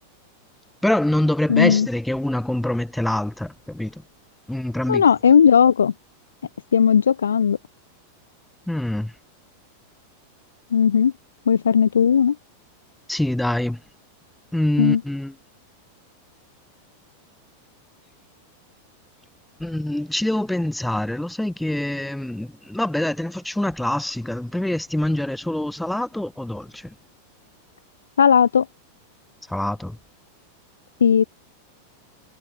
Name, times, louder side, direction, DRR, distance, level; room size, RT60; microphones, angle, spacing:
voice 1, 0.8-3.9 4.5-5.0 8.7-9.1 13.1-13.8 14.5-15.3 19.6-26.9 29.5-30.0, left 1 dB, 5° left, 0.5 m, -25 dB
voice 2, 1.5-1.9 4.9-5.9 6.7-7.6 10.7-11.1 11.5-12.4 14.8-15.0 28.2-28.7 31.0-31.2, left 7 dB, 70° left, 0.4 m, -16 dB
figure-of-eight pair, 90°, 0 cm